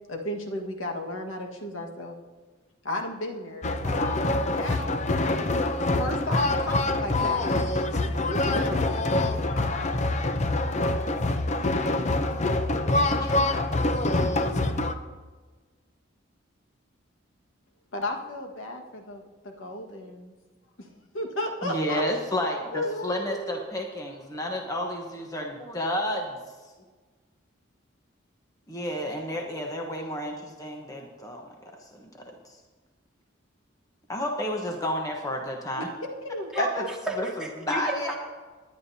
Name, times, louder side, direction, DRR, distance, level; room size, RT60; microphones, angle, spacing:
voice 1, 0.1-2.2 2.8-5.0 5.5-7.5 7.9-9.0 9.5-10.1 17.9-20.4 20.8-20.9 21.1-22.0 22.7-23.6 35.7-35.8 36.2-36.9, left 1 dB, 90° left, 2 dB, 1.6 m, -34 dB
sound 1, 3.6-14.9, left 2 dB, 35° left, 0.6 m, -25 dB
voice 2, 13.1-13.6 21.6-26.4 28.7-31.5 31.9-32.5 34.1-35.9 36.6-36.8 37.2-37.3 37.6-38.1, left 1 dB, 15° left, 1 dB, 1.1 m, -31 dB
voice 3, 36.5-38.2, right 2 dB, 5° right, -3 dB, 1.9 m, -34 dB
19.0 x 11.0 x 2.8 m, 1.4 s
head